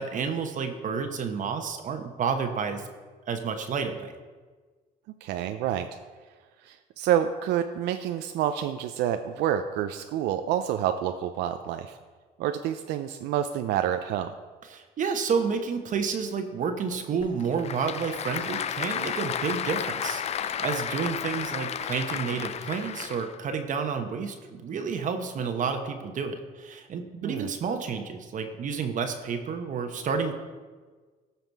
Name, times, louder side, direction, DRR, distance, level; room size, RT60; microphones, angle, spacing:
voice 1, 0.0-2.9 3.3-4.1 14.6-30.3, right 5 dB, 50° right, 6 dB, 1.0 m, -30 dB
voice 2, 5.2-5.9 6.6-12.0 12.4-14.3 27.2-27.5, right 10 dB, 85° right, 8 dB, 0.5 m, -28 dB
Applause / Crowd, 17.2-23.4, left 8 dB, 40° left, 0.4 m, -32 dB
14.5 x 5.8 x 4.6 m, 1.4 s
cardioid pair, 110°, 17 cm